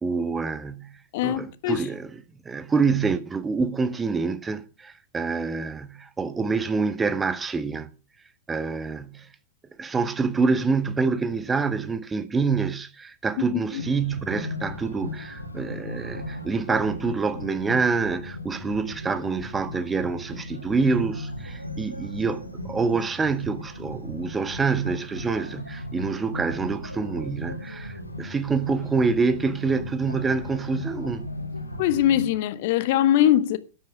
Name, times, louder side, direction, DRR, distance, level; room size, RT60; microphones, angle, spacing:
voice 1, 0.0-7.9 8.5-9.3 9.8-31.3, right 4 dB, 15° right, 1.6 m, -26 dB
voice 2, 1.1-1.8 31.8-33.6, left 12 dB, 50° left, 1.3 m, -21 dB
sound 1, 13.7-32.3, left 1 dB, 85° left, 2.7 m, -36 dB
13.0 x 10.0 x 6.4 m
figure-of-eight pair, 90°, 0 cm